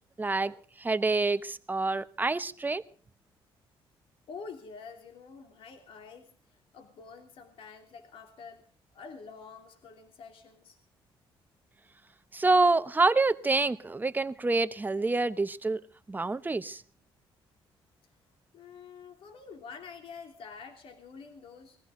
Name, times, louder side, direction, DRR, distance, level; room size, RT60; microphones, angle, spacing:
voice 1, 0.2-0.5 0.8-2.8 12.3-15.8 16.1-16.8, right 3 dB, 20° right, 13 dB, 0.9 m, -27 dB
voice 2, 4.3-8.6 8.9-10.8 18.5-21.8, left 5 dB, 70° left, 4 dB, 3.1 m, -47 dB
22.0 x 16.0 x 3.8 m, 0.40 s
cardioid pair, 95°, 10 cm